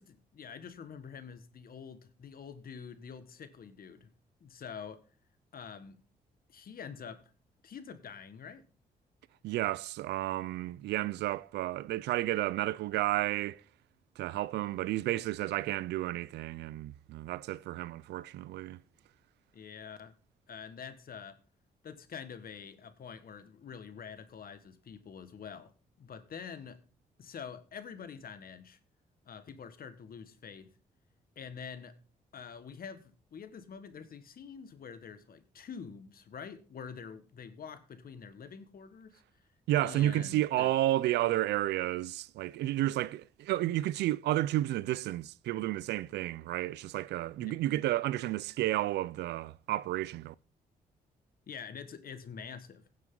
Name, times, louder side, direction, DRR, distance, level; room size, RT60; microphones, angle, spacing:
voice 1, 0.0-4.1 4.4-5.0 5.5-6.0 6.5-7.2 7.6-8.6 19.5-20.1 20.5-21.4 21.8-25.7 26.0-26.8 27.2-28.8 29.2-30.7 31.3-32.0 32.3-39.2 39.8-40.7 47.4-47.5 51.5-52.8, left 6 dB, 60° left, 1.5 m, -46 dB
voice 2, 9.4-13.6 14.2-18.8 39.7-50.3, right 15 dB, 80° right, 0.4 m, -31 dB
16.5 x 7.4 x 3.8 m
supercardioid pair, 60°, 17 cm